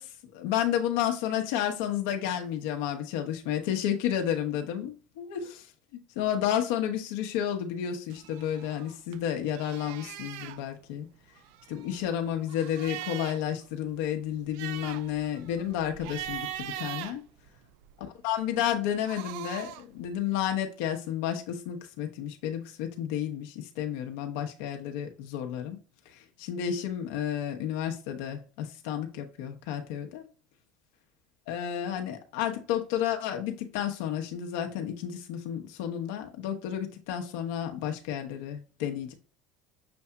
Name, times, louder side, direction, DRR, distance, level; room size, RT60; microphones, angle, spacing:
voice 1, 0.0-5.7 5.9-11.1 11.7-17.2 18.2-25.8 26.1-30.2 31.5-39.1, left 10 dB, 80° left, 1.0 m, -31 dB
sound 1, 8.1-9.2 9.5-10.6 11.4-13.5 13.9-14.0 14.3-17.9 18.8-19.9, right 13 dB, 75° right, 0.3 m, -41 dB
6.8 x 2.7 x 2.3 m
supercardioid pair, 110°, 0 cm